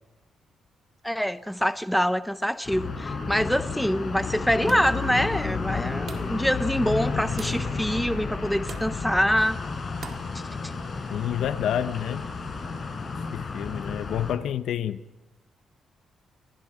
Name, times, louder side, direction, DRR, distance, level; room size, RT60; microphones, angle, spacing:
voice 1, 1.0-9.6, equal, ahead, 0.6 m, -25 dB
sound 1, 2.6-14.3, left 4 dB, 40° left, 4.8 m, -32 dB
sound 2, 4.7-5.0 6.1-6.4 7.4-7.7 8.7-9.0 10.0-10.3, right 6 dB, 55° right, 1.9 m, -42 dB
voice 2, 11.1-12.3 13.3-15.0, left 10 dB, 80° left, 0.7 m, -29 dB
28.5 x 21.5 x 5.0 m
cardioid pair, 105°, 0 cm